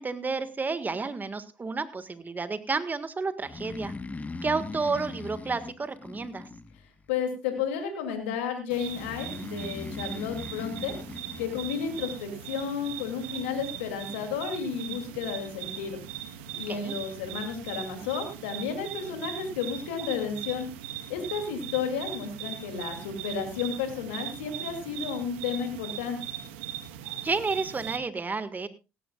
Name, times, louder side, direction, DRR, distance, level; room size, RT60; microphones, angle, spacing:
voice 1, 0.0-3.9 4.4-6.5 16.5-17.0 27.2-28.7, right 4 dB, 30° right, 11 dB, 1.7 m, -31 dB
Breathing, 3.4-7.1 8.9-12.0, left 3 dB, 25° left, 1.3 m, -40 dB
voice 2, 7.1-10.9 11.4-16.0 16.5-20.7 21.1-26.2, left 6 dB, 90° left, 5 dB, 2.7 m, -32 dB
sound 1, 8.7-28.0, right 10 dB, 85° right, 1.3 m, -40 dB
17.0 x 15.5 x 2.4 m, 0.28 s
hypercardioid pair, 65°, 6 cm